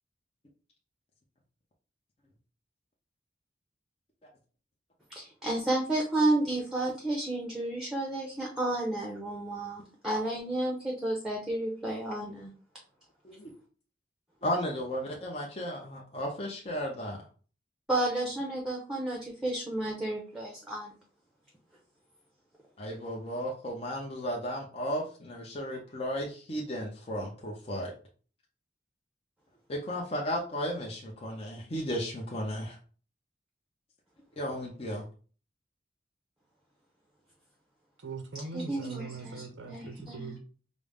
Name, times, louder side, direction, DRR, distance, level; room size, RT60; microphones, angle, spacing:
voice 1, 5.2-12.5 17.9-20.9 38.5-40.3, right 1 dB, 5° right, -2 dB, 0.7 m, -31 dB
voice 2, 14.4-17.2 22.8-27.9 29.7-32.8 34.4-35.0, equal, 35° left, -2 dB, 0.6 m, -34 dB
voice 3, 38.0-40.4, right 4 dB, 85° right, 6 dB, 0.6 m, -41 dB
5.1 x 2.0 x 3.4 m, 0.40 s
head